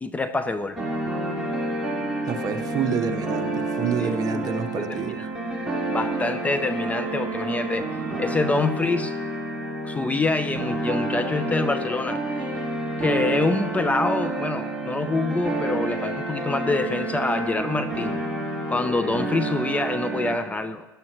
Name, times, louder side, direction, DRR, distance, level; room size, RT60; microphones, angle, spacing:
voice 1, 0.0-0.8 4.0-4.4 5.0-5.3 5.9-7.9 8.2-9.1 9.8-12.5 13.0-18.2 18.7-20.9, left 3 dB, 15° left, 10 dB, 0.6 m, -26 dB
sound 1, 0.8-20.4, right 2 dB, 5° right, 3.6 m, -29 dB
voice 2, 2.3-5.2, right 6 dB, 40° right, 7 dB, 1.2 m, -28 dB
17.0 x 11.5 x 3.0 m, 1.2 s
hypercardioid pair, 90°, 10 cm